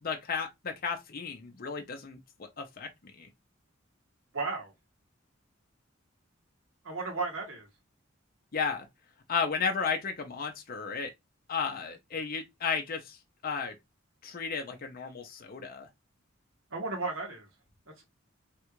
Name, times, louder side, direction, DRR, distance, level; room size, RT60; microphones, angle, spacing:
voice 1, 0.0-3.3 8.5-8.9 9.3-11.1 11.5-13.2 13.4-13.8 14.2-15.9, left 5 dB, 45° left, 0.6 m, -34 dB
voice 2, 4.3-4.7 6.8-7.7 16.7-17.5, right 3 dB, 85° right, 1.4 m, -34 dB
3.3 x 2.4 x 2.9 m
head